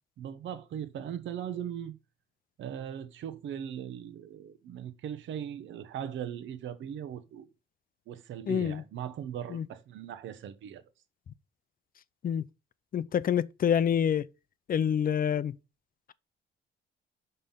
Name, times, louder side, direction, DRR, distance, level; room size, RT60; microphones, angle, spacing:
voice 1, 0.2-1.9 2.6-7.5 8.1-10.8, right 9 dB, 75° right, 1.0 m, -39 dB
voice 2, 8.5-8.8 9.5-9.6 12.2-12.4 12.9-14.3 14.7-15.5, left 8 dB, 45° left, 0.6 m, -27 dB
5.6 x 5.5 x 5.7 m
cardioid pair, 90°, 20 cm